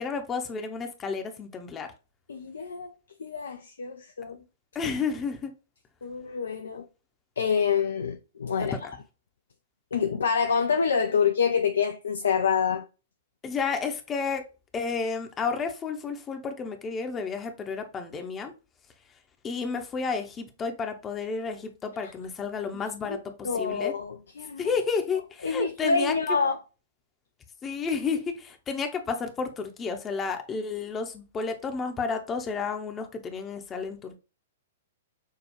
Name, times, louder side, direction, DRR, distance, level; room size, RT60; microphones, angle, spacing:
voice 1, 0.0-1.9 4.7-5.5 8.6-8.7 13.4-14.4 14.7-18.5 19.4-23.9 24.6-26.4 27.6-34.2, left 5 dB, 20° left, 0.7 m, -31 dB
voice 2, 2.3-2.9 3.2-4.4 6.0-6.9 7.4-8.8 9.9-12.9 22.0-22.1 23.1-23.2 23.4-24.7 25.4-26.6, left 6 dB, 65° left, 0.4 m, -27 dB
6.4 x 2.3 x 3.1 m
figure-of-eight pair, 105°, 0 cm